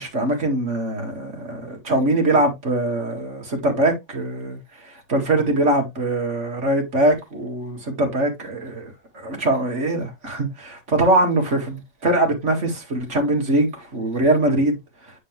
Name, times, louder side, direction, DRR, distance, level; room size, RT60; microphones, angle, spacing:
voice 1, 0.0-4.6 4.8-14.8, right 1 dB, 40° right, 2.2 m, -22 dB
8.8 x 4.4 x 3.2 m
omnidirectional pair, 1.9 m